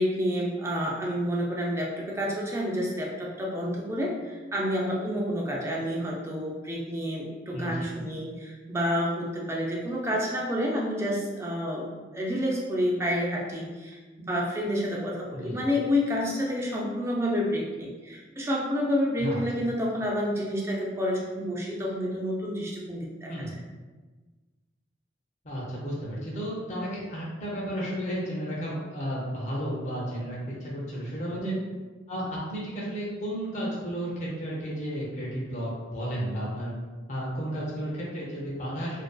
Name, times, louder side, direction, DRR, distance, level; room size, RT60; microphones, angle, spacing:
voice 1, 0.0-23.3 31.4-31.6, equal, 15° right, -3 dB, 0.3 m, -29 dB
voice 2, 7.5-7.9 15.3-15.7 19.2-19.4 23.3-23.5 25.4-31.5 32.1-36.7 37.1-39.0, equal, 40° left, -6 dB, 0.5 m, -33 dB
2.5 x 2.2 x 2.3 m, 1.3 s
head